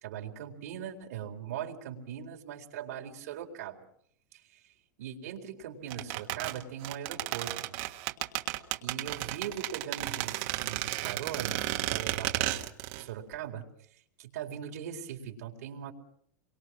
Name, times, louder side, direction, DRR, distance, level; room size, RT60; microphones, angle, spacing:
voice 1, 0.0-3.8 4.3-4.7 5.0-7.8 8.8-12.6 13.0-15.9, right 9 dB, 60° right, 1 dB, 4.3 m, -40 dB
sound 1, 5.9-13.1 13.3-13.4, right 17 dB, 40° right, 1.6 m, -33 dB
29.5 x 23.5 x 6.2 m, 0.66 s
supercardioid pair, 175°, 9 cm